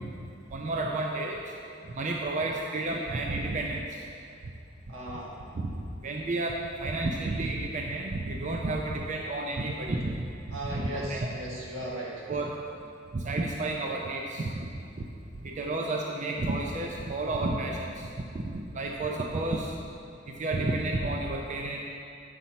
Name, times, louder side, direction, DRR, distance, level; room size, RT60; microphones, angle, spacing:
voice 1, 0.5-1.5 2.0-4.0 5.5-11.3 12.3-12.6 13.1-14.5 15.0-15.1 15.4-18.4 18.7-19.8 20.3-21.8, right 2 dB, 40° right, 0 dB, 0.5 m, -31 dB
voice 2, 4.9-5.4 10.5-12.3, right 1 dB, 85° right, -4 dB, 1.5 m, -37 dB
7.8 x 5.7 x 4.1 m, 2.5 s
head